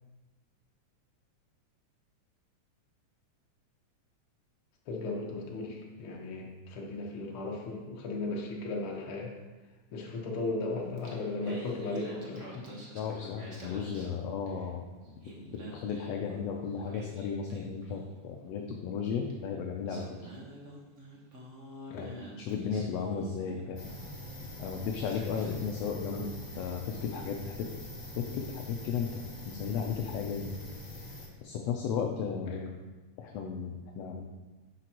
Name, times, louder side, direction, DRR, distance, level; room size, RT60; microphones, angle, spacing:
voice 1, 4.9-9.3 9.9-12.7 21.9-22.2 23.6-23.8 26.1-26.3 32.5-32.6, left 3 dB, 55° left, -1 dB, 1.7 m, -36 dB
Singing, 10.8-14.7 15.1-18.3 19.3-19.4 19.9-24.1 24.7-24.8 25.0-25.8, right 1 dB, 55° right, 0.8 m, -48 dB
voice 2, 12.9-14.8 15.7-20.0 21.9-22.1 22.4-23.8 24.6-26.3 26.6-27.7 28.2-29.1 29.5-30.5 31.4-32.6 33.2-34.2, left 6 dB, 75° left, 1 dB, 1.5 m, -34 dB
sound 1, 23.7-31.3, left 1 dB, 40° left, 0.5 m, -44 dB
10.0 x 6.8 x 3.0 m, 1.2 s
omnidirectional pair, 3.5 m